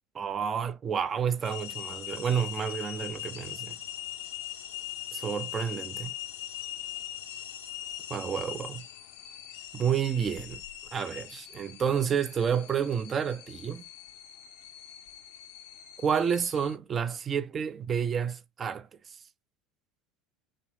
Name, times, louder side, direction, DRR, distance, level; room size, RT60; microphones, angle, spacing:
voice 1, 0.1-3.8 5.1-6.1 8.1-8.8 9.7-10.6 10.9-13.8 16.0-18.9, right 7 dB, 30° right, 0.4 m, -30 dB
sound 1, 1.4-16.7, left 13 dB, 65° left, 0.4 m, -41 dB
3.0 x 2.5 x 3.1 m
figure-of-eight pair, 70°, 0 cm